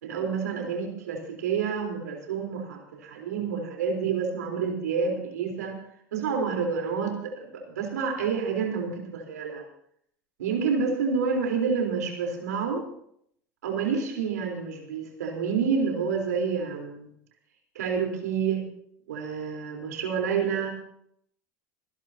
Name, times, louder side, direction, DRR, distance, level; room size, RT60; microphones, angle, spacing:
voice 1, 0.0-5.8 6.1-9.6 10.4-12.8 13.6-17.1 17.8-18.6 19.1-20.7, right 6 dB, 80° right, 2 dB, 3.8 m, -28 dB
28.0 x 11.0 x 2.8 m, 0.71 s
hypercardioid pair, 80°, 9 cm